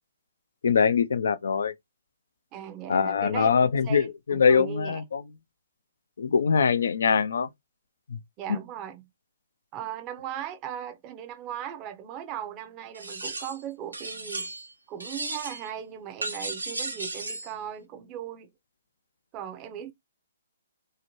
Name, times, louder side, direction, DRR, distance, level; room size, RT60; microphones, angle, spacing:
voice 1, 0.6-1.7 2.9-5.2 6.2-7.5 8.1-8.2, left 6 dB, 65° left, 0.4 m, -23 dB
voice 2, 2.5-3.5 3.8-5.0 8.4-9.1 9.7-14.5 14.9-18.5 19.3-19.9, right 10 dB, 25° right, 0.6 m, -38 dB
sound 1, 12.9-13.6 13.9-14.7 15.0-15.7 16.2-17.5, right 2 dB, 90° right, 0.8 m, -35 dB
2.8 x 2.1 x 2.9 m
figure-of-eight pair, 135°, 0 cm